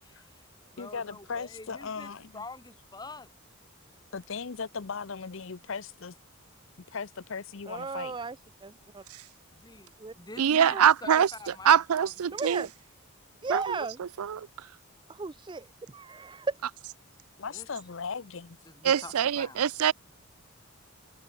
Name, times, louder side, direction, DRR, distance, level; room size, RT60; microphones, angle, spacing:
voice 1, 0.0-3.3 9.5-12.4 17.5-17.7 18.7-19.7, left 3 dB, 20° left, 2.4 m, -47 dB
voice 2, 0.8-2.4 4.1-6.1 6.9-8.2 17.4-18.6, left 5 dB, 60° left, 0.7 m, -37 dB
voice 3, 7.7-8.4 8.6-9.0 10.0-10.1 10.7-10.8 12.3-12.7 13.4-14.0 15.1-15.7 15.9-16.6, right 4 dB, 20° right, 0.4 m, -35 dB
voice 4, 10.4-11.3 11.6-12.7 13.5-14.5 18.8-19.9, right 8 dB, 80° right, 0.5 m, -24 dB
head